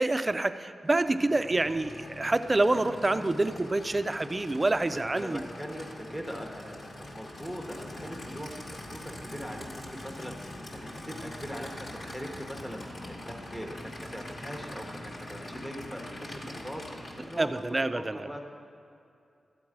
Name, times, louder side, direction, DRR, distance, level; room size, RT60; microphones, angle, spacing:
voice 1, 0.0-5.4 17.4-18.3, right 2 dB, 20° right, 11 dB, 0.3 m, -27 dB
Aircraft / Idling, 0.9-17.8, left 1 dB, 45° left, 1.1 m, -43 dB
voice 2, 4.9-18.4, equal, 5° left, 1 dB, 0.8 m, -41 dB
13.0 x 4.6 x 8.7 m, 2.5 s
wide cardioid pair, 160°, 0 cm